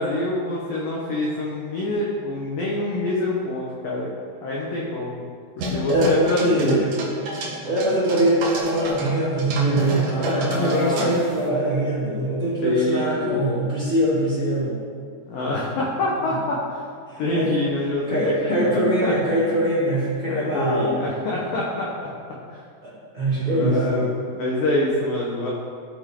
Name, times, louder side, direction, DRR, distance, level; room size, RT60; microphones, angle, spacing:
voice 1, 0.0-4.1 4.4-5.2 5.7-6.9 9.7-11.1 12.6-13.6 15.3-16.8 17.2-19.1 20.3-22.1 22.5-22.6 23.5-25.5, left 2 dB, 70° left, -5 dB, 2.1 m, -26 dB
sound 1, 5.6-9.1 9.4-11.5, right 1 dB, 70° right, 1.8 m, -30 dB
voice 2, 5.9-6.8 7.6-14.7 17.1-17.5 18.1-21.0 22.8-24.0, right 1 dB, 20° right, -11 dB, 2.8 m, -22 dB
14.0 x 8.8 x 3.8 m, 2.2 s
omnidirectional pair, 5.7 m